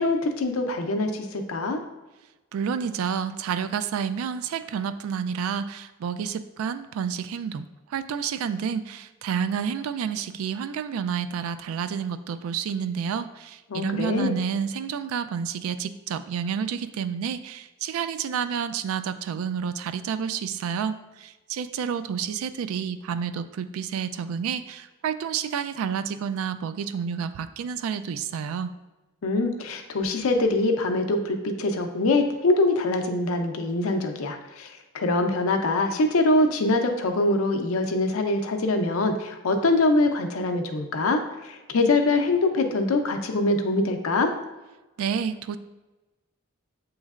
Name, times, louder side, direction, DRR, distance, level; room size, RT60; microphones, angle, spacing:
voice 1, 0.0-1.8 13.7-14.4 29.2-34.7 34.9-44.3, left 2 dB, 85° left, 5 dB, 0.5 m, -24 dB
voice 2, 2.5-28.7 45.0-45.6, right 7 dB, 90° right, 12 dB, 0.3 m, -29 dB
7.1 x 3.1 x 2.4 m, 1.1 s
head